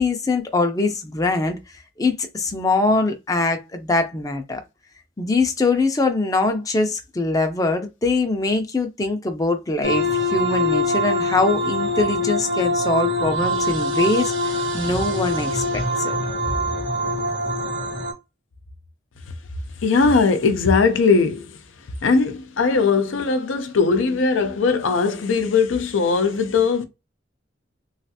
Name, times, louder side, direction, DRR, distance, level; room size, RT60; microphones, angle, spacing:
voice 1, 0.0-4.6 5.2-16.1, left 3 dB, 20° left, 0.5 m, -23 dB
sound 1, 9.8-18.1, left 1 dB, 80° right, 1.4 m, -24 dB
voice 2, 19.8-21.6 22.0-26.8, left 4 dB, 80° left, 0.5 m, -19 dB
3.2 x 2.3 x 2.8 m
head